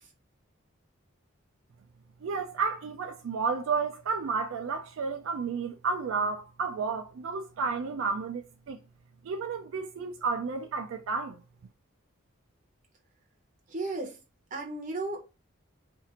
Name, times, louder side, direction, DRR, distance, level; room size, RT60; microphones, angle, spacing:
voice 1, 2.2-8.8 9.2-11.4, right 4 dB, 70° right, 0.3 m, -32 dB
voice 2, 13.7-14.1 14.5-15.2, right 2 dB, 40° right, 0.9 m, -34 dB
2.6 x 2.4 x 4.2 m
head